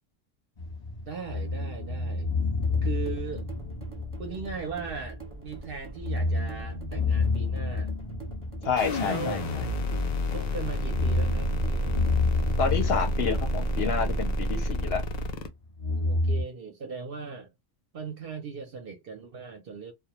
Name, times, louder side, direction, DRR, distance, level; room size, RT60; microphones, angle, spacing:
sound 1, 0.6-5.2 5.5-5.6 5.9-10.2 10.7-15.0 15.8-16.4, left 3 dB, 25° left, 0.8 m, -30 dB
voice 1, 1.1-2.3 2.8-3.5 4.2-7.9 8.8-9.4 10.3-12.1 15.9-17.5 17.9-19.9, right 5 dB, 60° right, 0.7 m, -38 dB
sound 2, 2.6-14.3, right 3 dB, 10° right, 0.8 m, -43 dB
voice 2, 8.6-9.4 12.6-15.0, left 6 dB, 60° left, 0.7 m, -29 dB
sound 3, 8.8-15.5, equal, 80° left, 0.3 m, -29 dB
2.2 x 2.1 x 2.8 m
omnidirectional pair, 1.3 m